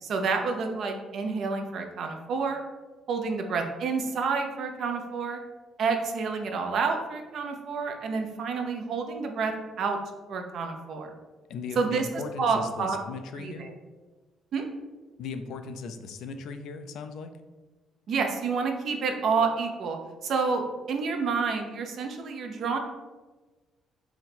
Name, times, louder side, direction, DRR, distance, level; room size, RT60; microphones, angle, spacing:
voice 1, 0.0-2.6 3.1-5.4 5.8-9.5 9.8-10.0 10.3-11.1 11.8-12.1 12.4-13.0 13.4-13.7 14.5-14.6 18.1-20.0 20.2-22.8, right 5 dB, 60° right, 4 dB, 0.5 m, -29 dB
voice 2, 11.5-13.7 15.2-17.4, left 4 dB, 80° left, 8 dB, 0.3 m, -38 dB
3.9 x 2.0 x 4.2 m, 1.2 s
cardioid pair, 110°, 0 cm